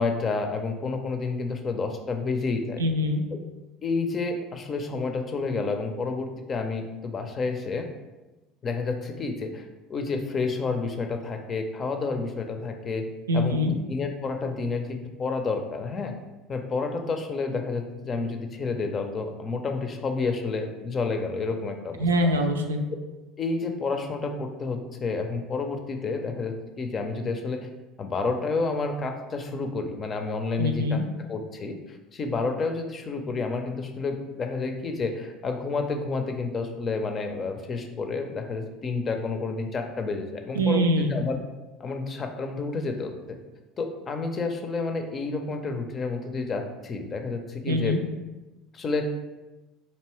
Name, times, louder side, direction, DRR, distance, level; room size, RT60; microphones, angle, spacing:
voice 1, 0.0-2.8 3.8-7.9 8.6-13.0 13.3-16.2 16.5-22.1 23.4-27.7 28.0-41.4 41.8-43.4 43.8-48.0 48.7-49.1, left 4 dB, 35° left, 5 dB, 0.5 m, -30 dB
voice 2, 2.8-3.2 13.3-13.7 22.0-22.8 30.6-31.0 40.5-41.2 47.7-48.0, equal, 80° right, 5 dB, 0.4 m, -24 dB
4.4 x 2.8 x 3.0 m, 1.1 s
figure-of-eight pair, 65°, 0 cm